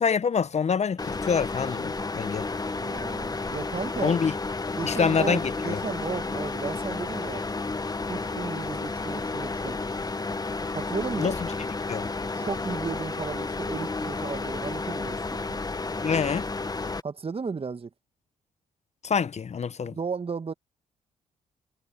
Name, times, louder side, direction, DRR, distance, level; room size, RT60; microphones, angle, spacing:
voice 1, 0.0-2.5 4.0-4.3 4.8-5.8 11.2-11.3 11.9-12.1 16.0-16.5 19.0-20.0, left 6 dB, 40° left, 1.1 m, -26 dB
sound 1, 1.0-17.0, left 3 dB, 25° left, 1.6 m, -32 dB
voice 2, 2.7-4.2 4.8-7.4 8.1-9.8 10.7-11.3 12.3-15.6 17.0-17.9 19.8-20.5, right 5 dB, 35° right, 1.8 m, -34 dB
hypercardioid pair, 45°, 17 cm